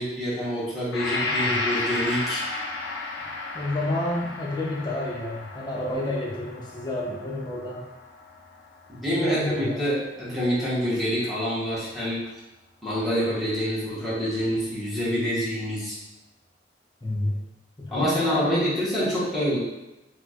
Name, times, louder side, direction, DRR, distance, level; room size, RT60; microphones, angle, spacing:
voice 1, 0.0-2.5 8.9-12.2 12.8-16.0 17.9-19.6, equal, ahead, -10 dB, 0.9 m, -26 dB
Gong, 0.9-9.0, left 2 dB, 85° left, 0.4 m, -33 dB
voice 2, 1.2-1.6 3.5-7.8 9.1-9.9 17.0-17.4 17.8-18.7, left 1 dB, 25° left, -4 dB, 0.6 m, -30 dB
4.1 x 2.1 x 2.3 m, 0.99 s
head